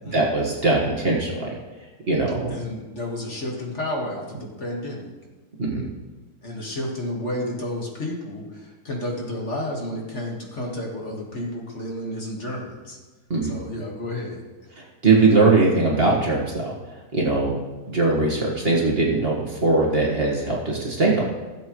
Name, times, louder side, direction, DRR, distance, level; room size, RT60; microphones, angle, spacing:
voice 1, 0.1-1.5 2.1-2.5 5.6-5.9 13.3-13.6 15.0-16.7 17.1-17.6 17.9-21.2, right 3 dB, 35° right, -3 dB, 1.7 m, -20 dB
voice 2, 2.5-5.1 6.4-13.0 13.4-14.4, left 1 dB, 45° left, -2 dB, 2.0 m, -31 dB
16.5 x 7.7 x 3.1 m, 1.2 s
omnidirectional pair, 1.8 m